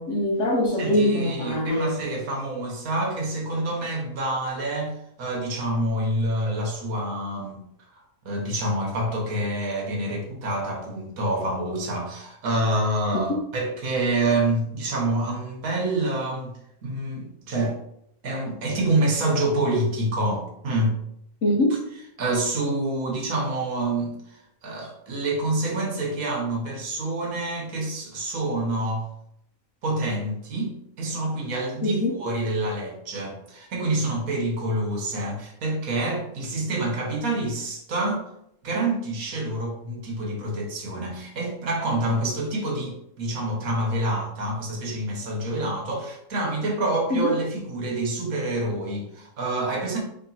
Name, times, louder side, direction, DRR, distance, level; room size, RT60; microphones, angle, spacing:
voice 1, 0.0-1.9 13.3-13.4 21.4-21.8 31.8-32.1 47.1-47.3, left 1 dB, 60° left, 0 dB, 0.9 m, -23 dB
voice 2, 0.8-7.6 8.2-16.5 16.8-17.7 18.2-21.0 22.2-29.1 29.8-38.2 38.6-50.0, right 1 dB, 65° right, -1 dB, 1.4 m, -27 dB
3.1 x 2.9 x 4.0 m, 0.75 s
omnidirectional pair, 1.6 m